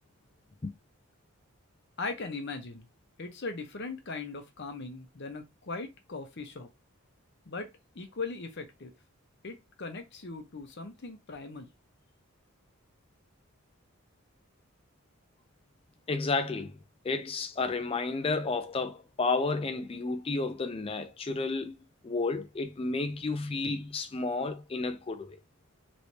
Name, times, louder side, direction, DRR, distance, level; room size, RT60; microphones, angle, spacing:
voice 1, 2.0-2.9 3.2-6.7 7.5-7.7 7.9-8.9 9.4-11.7, left 3 dB, 50° left, 0.7 m, -39 dB
voice 2, 16.1-16.8 17.0-21.7 22.0-25.4, left 3 dB, 25° left, 0.4 m, -31 dB
3.2 x 3.1 x 2.7 m
head